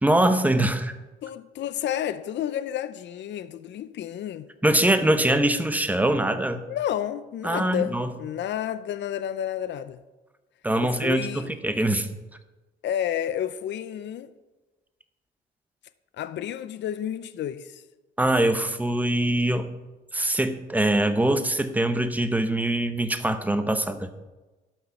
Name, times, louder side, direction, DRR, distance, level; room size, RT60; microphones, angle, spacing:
voice 1, 0.0-0.9 4.6-6.6 7.4-8.1 10.6-12.1 18.2-19.7 20.1-24.1, right 1 dB, 10° right, 0.9 m, -23 dB
voice 2, 1.2-4.5 6.7-10.0 10.8-11.5 12.8-14.3 16.2-17.8, left 10 dB, 65° left, 0.5 m, -31 dB
12.0 x 5.5 x 5.7 m
cardioid pair, 90°, 20 cm